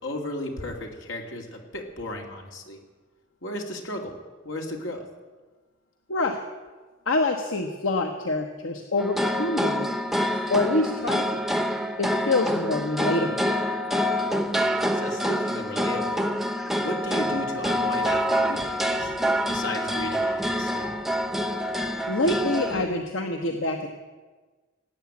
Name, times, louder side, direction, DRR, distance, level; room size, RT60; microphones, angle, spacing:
voice 1, 0.0-2.8 3.4-4.2 4.4-5.0 14.9-16.2 16.8-19.2 19.5-20.9, left 1 dB, 75° left, 2 dB, 2.5 m, -35 dB
voice 2, 6.1-6.4 7.1-9.9 10.2-11.4 12.0-13.5 22.1-23.9, left 2 dB, 90° left, 4 dB, 1.1 m, -26 dB
sound 1, 9.0-22.9, equal, ahead, 0.8 m, -26 dB
18.0 x 8.5 x 8.5 m, 1.3 s
head